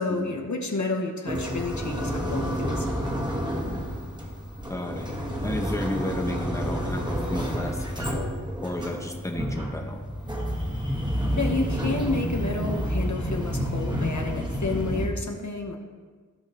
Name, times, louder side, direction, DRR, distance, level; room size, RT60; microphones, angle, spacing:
voice 1, 0.0-2.9 11.4-15.8, left 3 dB, 60° left, 2 dB, 1.0 m, -30 dB
sound 1, 1.3-15.1, equal, 15° right, 1.5 m, -29 dB
voice 2, 4.7-8.2 8.6-10.0, left 1 dB, 10° left, 1 dB, 1.0 m, -33 dB
15.0 x 5.8 x 2.9 m, 1.5 s
wide cardioid pair, 60°, 32 cm